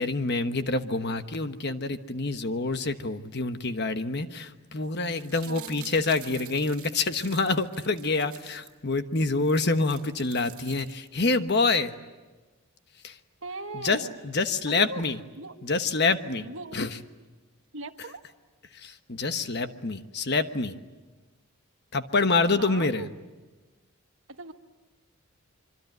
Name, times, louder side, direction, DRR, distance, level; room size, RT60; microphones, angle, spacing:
voice 1, 0.0-12.0 13.0-13.2 13.7-15.2 15.6-16.5 16.7-16.9 18.7-20.7 21.9-23.1, left 3 dB, 50° left, 9 dB, 1.2 m, -27 dB
sound 1, 5.0-8.7 9.1-9.2 9.4-11.3 11.6-11.7, right 12 dB, 85° right, 1.9 m, -48 dB
voice 2, 5.5-6.0 13.4-14.2 14.7-15.1 15.4-15.6 16.4-16.8 17.7-18.2 22.6-23.1 24.3-24.5, right 3 dB, 60° right, 7 dB, 1.4 m, -39 dB
26.0 x 24.5 x 9.3 m, 1.2 s
head